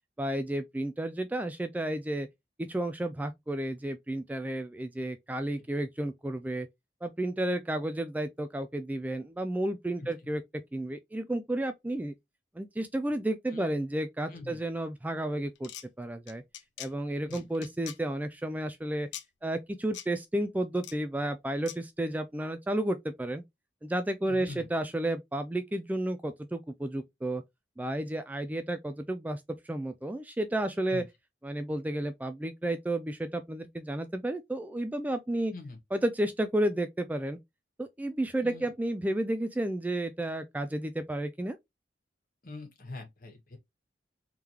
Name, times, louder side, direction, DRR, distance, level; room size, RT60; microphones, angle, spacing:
voice 1, 0.2-2.3 2.6-6.7 7.0-10.4 10.7-12.1 12.6-15.7 16.0-16.4 16.8-19.1 19.4-23.4 23.8-27.4 27.8-31.0 31.4-35.5 35.9-37.4 37.8-41.6, right 1 dB, 10° right, 0.3 m, -32 dB
voice 2, 14.3-14.6 17.2-17.7 24.2-24.7 30.9-31.0 35.5-35.8 38.4-38.7 42.4-43.6, left 2 dB, 50° left, 1.6 m, -44 dB
sound 1, 15.5-15.8 16.3-16.9 17.3-18.0 19.1-19.2 19.9-20.1 20.8-20.9 21.7-21.8, left 11 dB, 90° left, 0.5 m, -42 dB
3.7 x 3.4 x 2.9 m
head